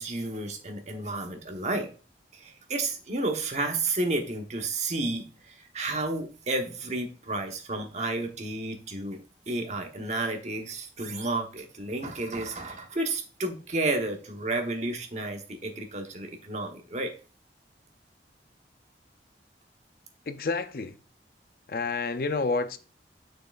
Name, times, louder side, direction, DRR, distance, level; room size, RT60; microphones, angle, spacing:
voice 1, 0.0-1.9 2.3-17.1, right 2 dB, 40° right, 1.1 m, -31 dB
voice 2, 20.2-21.0 21.7-22.8, left 3 dB, 55° left, 0.5 m, -29 dB
6.7 x 6.4 x 2.5 m
head